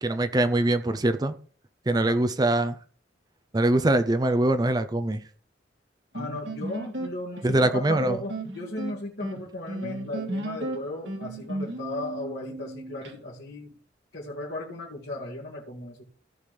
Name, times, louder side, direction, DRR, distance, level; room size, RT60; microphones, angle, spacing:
voice 1, 0.0-1.3 1.9-2.8 3.5-5.2 7.4-8.2, right 1 dB, 20° right, 0.5 m, -23 dB
voice 2, 6.1-13.7 14.1-16.0, left 2 dB, 65° left, 2.1 m, -36 dB
sound 1, 6.1-13.1, right 1 dB, 80° right, 2.2 m, -35 dB
16.0 x 5.8 x 3.3 m
head